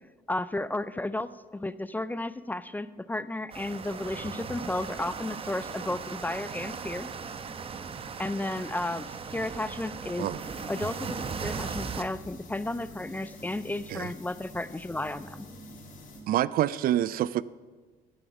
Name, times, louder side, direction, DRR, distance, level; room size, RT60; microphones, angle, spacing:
voice 1, 0.3-7.1 8.2-10.3 10.7-15.5, left 2 dB, 10° left, 15 dB, 0.4 m, -33 dB
sound 1, 3.5-12.0, right 5 dB, 35° right, 0.8 m, -38 dB
sound 2, 10.4-16.2, equal, 50° left, 2.9 m, -47 dB
voice 2, 16.3-17.4, right 12 dB, 60° right, 19 dB, 0.4 m, -26 dB
14.0 x 7.9 x 5.9 m, 1.4 s
cardioid pair, 110°, 17 cm